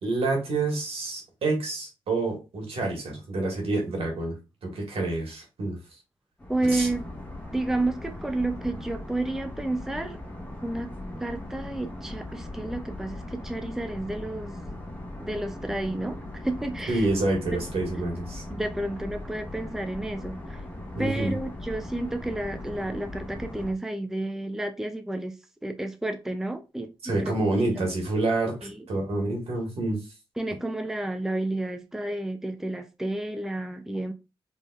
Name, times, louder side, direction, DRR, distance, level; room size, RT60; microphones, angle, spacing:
voice 1, 0.0-4.4 4.6-5.8 6.7-6.9 16.9-18.4 20.9-21.3 27.0-28.6 28.9-30.0, right 2 dB, 85° right, 1.7 m, -27 dB
sound 1, 6.4-23.7, left 1 dB, 15° left, 1.4 m, -39 dB
voice 2, 6.5-7.0 7.5-10.2 10.6-10.9 11.2-14.6 15.2-17.1 18.5-20.6 21.0-25.3 25.6-26.9 27.2-27.4 28.6-28.9 30.4-34.1, right 2 dB, 5° right, 0.5 m, -31 dB
4.2 x 3.4 x 2.4 m
cardioid pair, 90°, 10 cm